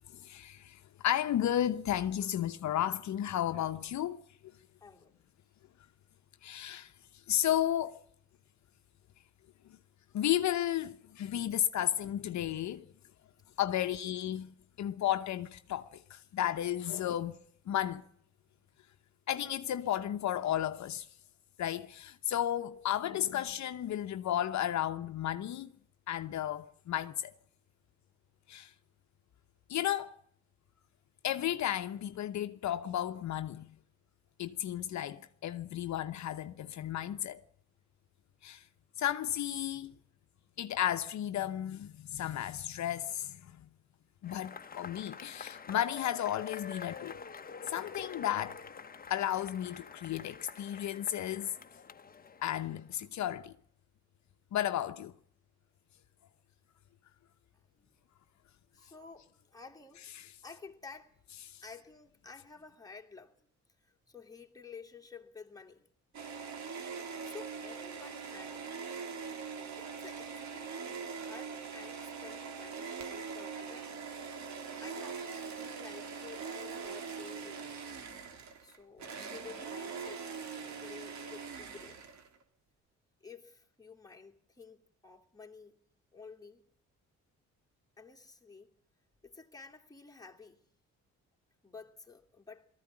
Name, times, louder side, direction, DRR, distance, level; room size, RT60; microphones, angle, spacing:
voice 1, 0.1-4.2 6.4-8.0 9.7-9.8 10.1-12.9 13.6-14.5 14.8-18.0 19.3-21.1 21.6-25.7 26.1-27.3 28.5-28.7 29.7-30.1 31.2-33.7 34.4-37.4 38.4-38.6 39.0-39.9 40.6-43.7 44.2-47.2 47.7-48.6 49.1-51.5 52.4-53.5 54.5-55.1 60.2-60.3 61.5-61.6, left 11 dB, 65° left, 0.9 m, -33 dB
voice 2, 4.8-5.1 13.7-13.8 58.7-60.1 60.4-61.1 61.6-63.5 63.8-65.9 67.2-68.6 69.8-73.9 74.8-77.7 78.6-80.2 80.8-82.0 83.2-85.8 86.1-86.6 88.0-88.7 89.2-90.6 91.6-92.7, left 5 dB, 10° left, 2.8 m, -52 dB
Cheering / Applause / Crowd, 44.2-52.9, left 5 dB, 30° left, 1.1 m, -47 dB
sound 1, 66.1-82.4, right 6 dB, 65° right, 3.3 m, -42 dB
18.5 x 14.5 x 9.8 m
cardioid pair, 90°, 30 cm